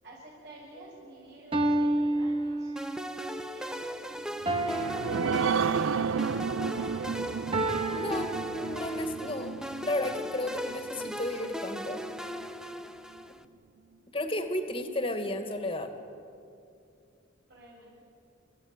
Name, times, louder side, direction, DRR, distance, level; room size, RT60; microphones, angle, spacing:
voice 1, 0.0-2.7 3.2-7.4 17.5-17.9, right 1 dB, 60° right, -7 dB, 7.0 m, -50 dB
sound 1, 0.8-0.9 1.5-3.1 4.5-6.1 7.5-9.1, right 1 dB, 25° right, 1.8 m, -31 dB
sound 2, 2.8-13.4, equal, 5° right, 0.8 m, -38 dB
sound 3, 4.4-11.5 12.0-12.1 12.4-12.5, right 6 dB, 85° right, 0.5 m, -32 dB
voice 2, 8.0-9.6 9.8-12.0 14.1-15.9, left 1 dB, 30° left, 7 dB, 2.1 m, -33 dB
29.5 x 16.0 x 10.0 m, 2.5 s
head